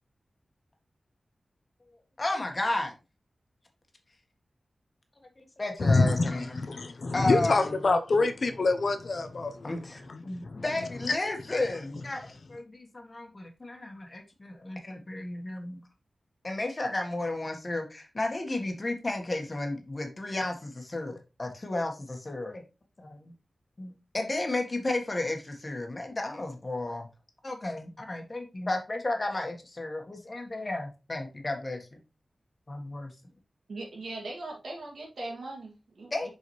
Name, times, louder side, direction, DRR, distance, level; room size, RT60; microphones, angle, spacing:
voice 1, 2.2-2.9 5.4-6.5 7.1-7.8 9.6-15.8 16.4-22.6 23.0-23.3 23.8-27.1 27.4-32.0 32.7-33.1 36.1-36.3, left 2 dB, 35° left, 1.5 m, -33 dB
voice 2, 5.8-9.8 10.1-10.6, left 3 dB, 60° left, 0.8 m, -26 dB
voice 3, 33.7-36.3, right 2 dB, 85° right, 2.5 m, -40 dB
6.9 x 4.8 x 3.2 m
wide cardioid pair, 110°, 0 cm